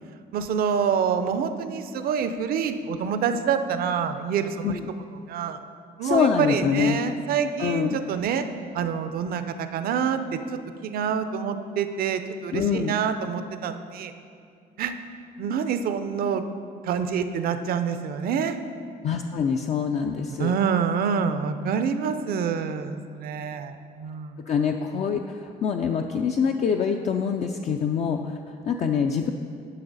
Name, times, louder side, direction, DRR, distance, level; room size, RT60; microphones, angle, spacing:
voice 1, 0.3-4.8 5.3-5.6 6.0-8.4 8.7-14.1 14.8-14.9 15.4-16.4 16.7-18.6 20.4-24.4, right 7 dB, 60° right, 10 dB, 0.6 m, -27 dB
voice 2, 6.0-7.0 7.6-8.0 12.5-13.0 19.0-20.5 24.5-29.3, left 6 dB, 45° left, 4 dB, 0.4 m, -25 dB
10.5 x 5.6 x 4.0 m, 2.3 s
cardioid pair, 110°, 17 cm